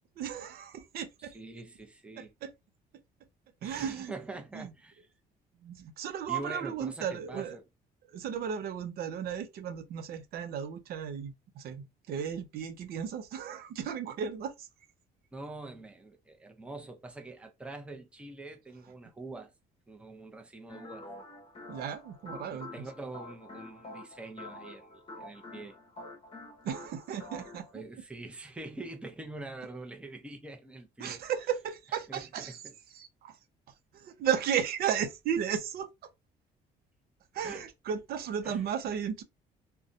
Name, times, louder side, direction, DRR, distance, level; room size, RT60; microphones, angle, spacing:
voice 1, 0.2-1.4 2.4-2.5 3.6-4.1 4.5-4.7 5.6-7.6 8.1-14.7 21.7-22.7 26.6-27.8 31.0-32.6 32.9-33.4 33.9-36.1 37.3-39.2, right 8 dB, 65° right, 0.6 m, -34 dB
voice 2, 1.2-2.3 3.6-5.1 6.3-7.6 15.3-19.5 19.9-21.1 22.5-25.8 27.7-31.2 32.1-32.7 37.4-37.7 38.4-38.6, right 2 dB, 5° right, 0.6 m, -44 dB
sound 1, 20.7-27.7, left 2 dB, 35° left, 0.9 m, -47 dB
2.6 x 2.2 x 2.6 m
cardioid pair, 110°, 17 cm